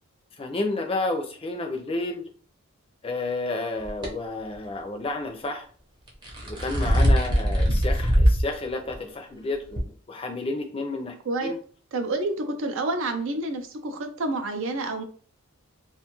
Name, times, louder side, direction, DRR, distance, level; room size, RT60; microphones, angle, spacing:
voice 1, 0.4-2.2 3.0-5.7 6.4-11.1 11.4-11.6, left 2 dB, 25° left, 4 dB, 0.4 m, -31 dB
sound 1, 3.8-4.1 6.1-8.5 8.9-9.0 9.8-9.9, equal, 20° right, 0.7 m, -21 dB
voice 2, 11.9-15.0, right 2 dB, 60° right, 6 dB, 0.4 m, -28 dB
2.5 x 2.3 x 2.9 m, 0.43 s
head